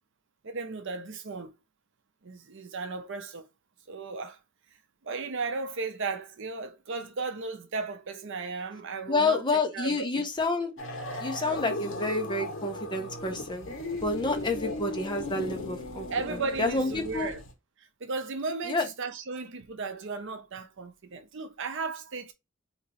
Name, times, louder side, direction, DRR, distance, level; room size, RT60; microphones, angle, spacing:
voice 1, 0.4-1.5 2.2-3.4 3.9-4.4 5.0-10.2 16.1-17.4 18.0-22.3, right 4 dB, 60° right, 0.6 m, -35 dB
voice 2, 9.1-10.7 11.2-13.7 14.0-17.3 18.7-18.8, left 3 dB, 20° left, 0.7 m, -29 dB
sound 1, 10.8-17.5, left 2 dB, 65° left, 1.4 m, -37 dB
2.9 x 2.8 x 4.1 m
head